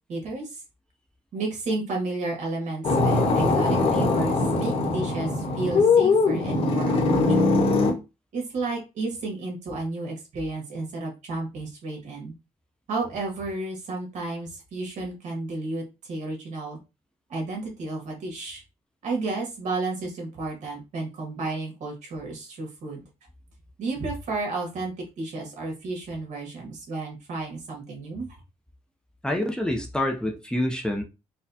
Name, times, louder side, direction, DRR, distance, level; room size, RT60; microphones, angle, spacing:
voice 1, 0.1-0.6 1.3-7.6 8.3-12.3 12.9-16.8 17.3-18.6 19.0-23.0 23.8-28.3, right 2 dB, 70° right, 1.6 m, -32 dB
sound 1, 2.8-7.9, left 3 dB, 50° left, 1.2 m, -21 dB
voice 2, 29.2-31.0, left 1 dB, 5° left, 0.6 m, -27 dB
4.3 x 2.3 x 2.7 m
cardioid pair, 115°, 13 cm